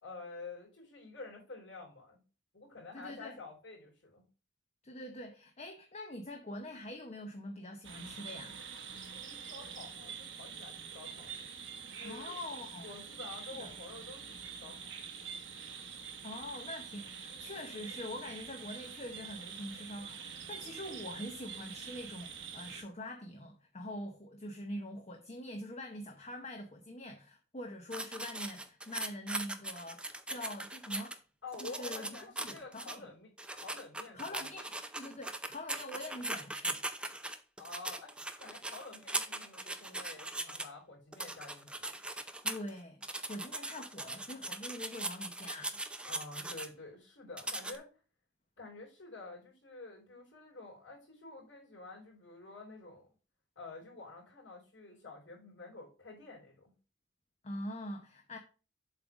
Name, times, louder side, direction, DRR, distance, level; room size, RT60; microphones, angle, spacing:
voice 1, 0.0-2.2 2.5-4.3 9.2-11.3 11.8-12.4 12.8-14.9 31.4-34.4 37.6-41.9 46.0-47.9 48.6-53.1 53.6-56.7, left 3 dB, 65° left, 3.8 m, -49 dB
voice 2, 2.9-3.4 4.8-8.6 12.0-12.9 13.3-13.7 16.2-31.2 31.6-32.1 32.4-33.1 34.1-36.8 42.4-45.8 57.4-58.4, left 1 dB, 35° left, 0.8 m, -44 dB
sound 1, 7.8-22.8, right 7 dB, 65° right, 1.1 m, -46 dB
sound 2, 27.9-31.1 31.5-33.0 33.4-40.6 41.1-42.7 43.0-46.7 47.4-47.8, right 2 dB, 5° right, 0.5 m, -40 dB
7.6 x 3.7 x 6.0 m
head